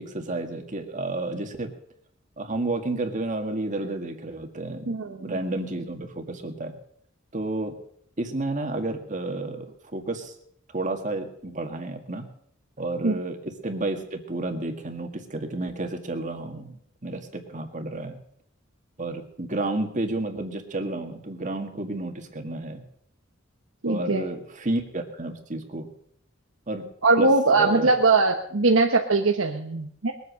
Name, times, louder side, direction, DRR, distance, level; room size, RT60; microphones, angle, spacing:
voice 1, 0.0-1.7 2.4-6.8 7.3-7.7 8.2-9.7 9.9-10.3 10.7-12.3 12.8-18.2 19.0-22.8 23.9-25.9 26.7-26.8 27.2-27.9, right 2 dB, 40° right, 5 dB, 1.9 m, -31 dB
voice 2, 4.9-5.4 13.0-13.2 23.8-24.2 27.0-30.1, right 3 dB, 80° right, 3 dB, 1.2 m, -21 dB
21.5 x 8.4 x 6.4 m, 0.68 s
head